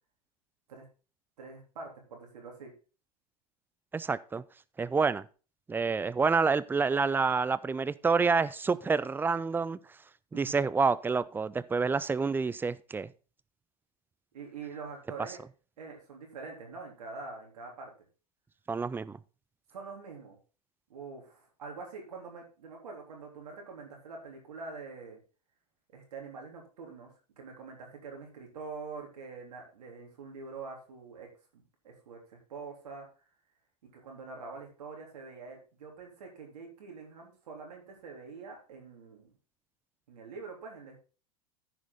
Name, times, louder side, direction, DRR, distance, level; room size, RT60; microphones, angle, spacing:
voice 1, 1.4-2.7 10.3-10.6 14.3-15.4 15.8-17.9 19.7-20.4 20.9-25.2 25.9-33.1 33.8-39.3 40.1-41.0, right 4 dB, 75° right, 1 dB, 3.6 m, -45 dB
voice 2, 3.9-4.4 4.8-5.2 5.7-9.8 10.3-13.1 18.7-19.2, right 4 dB, 10° right, 16 dB, 0.4 m, -28 dB
14.0 x 5.1 x 4.0 m, 0.36 s
hypercardioid pair, 95°, 21 cm